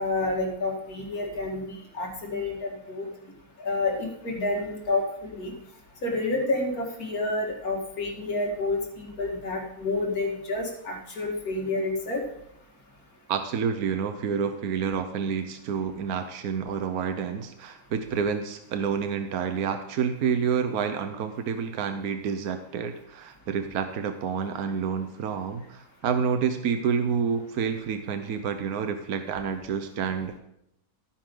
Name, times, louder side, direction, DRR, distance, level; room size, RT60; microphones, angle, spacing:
voice 1, 0.0-3.1 3.6-5.5 6.0-12.2, left 2 dB, 80° left, 0 dB, 2.7 m, -29 dB
voice 2, 13.3-30.4, right 6 dB, 80° right, 7 dB, 1.3 m, -29 dB
15.0 x 9.9 x 3.9 m, 0.78 s
omnidirectional pair, 1.5 m